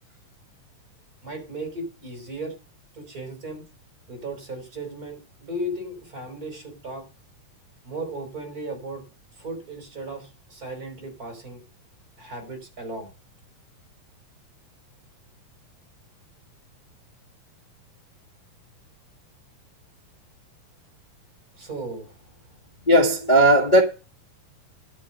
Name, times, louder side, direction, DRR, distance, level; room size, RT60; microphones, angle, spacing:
voice 1, 1.2-2.5 2.9-3.6 4.1-7.1 7.8-9.0 9.3-11.6 12.2-13.1 21.6-22.2, right 1 dB, 25° right, 5.5 m, -36 dB
voice 2, 22.9-23.8, right 1 dB, 45° left, 0.6 m, -16 dB
11.5 x 8.9 x 5.5 m
omnidirectional pair, 4.0 m